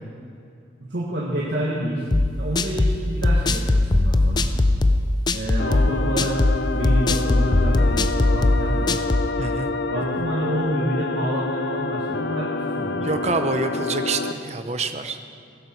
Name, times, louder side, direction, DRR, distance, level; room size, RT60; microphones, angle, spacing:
voice 1, 0.8-2.1 2.4-4.5 5.3-6.4 6.7-9.0 9.9-13.1, right 1 dB, 70° right, -5 dB, 1.8 m, -28 dB
sound 1, 2.1-9.3, left 2 dB, 25° left, 0.4 m, -20 dB
sound 2, 5.6-14.3, left 3 dB, 70° left, 0.6 m, -27 dB
voice 2, 9.4-9.7 10.2-10.3 13.0-15.3, right 3 dB, 35° right, 7 dB, 0.8 m, -27 dB
15.5 x 12.5 x 4.6 m, 2.5 s
head